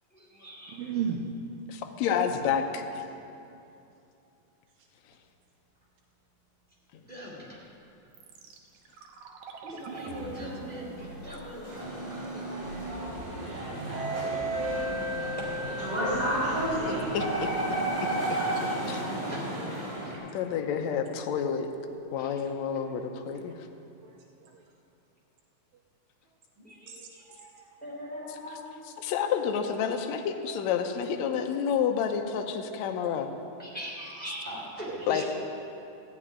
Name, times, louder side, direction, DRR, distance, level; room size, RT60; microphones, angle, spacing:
voice 1, 0.1-0.8 7.1-7.6 9.6-11.9 15.4-15.5 18.1-20.2 22.2-22.3 26.6-28.7 33.6-35.2, equal, 5° left, -5 dB, 2.8 m, -41 dB
voice 2, 0.7-1.2 24.0-24.6 26.9-27.0 34.9-35.2, right 8 dB, 90° right, 0 dB, 2.5 m, -34 dB
voice 3, 1.7-3.0 16.9-19.1 20.3-21.7 22.1-23.6 28.8-33.3 35.1-35.2, left 7 dB, 75° left, 4 dB, 1.7 m, -30 dB
sound 1, 8.1-20.1 20.4-20.5, right 3 dB, 65° right, 2.1 m, -42 dB
sound 2, 9.8-20.2, right 1 dB, 30° right, 4.5 m, -32 dB
14.5 x 6.0 x 9.6 m, 2.7 s
omnidirectional pair, 4.0 m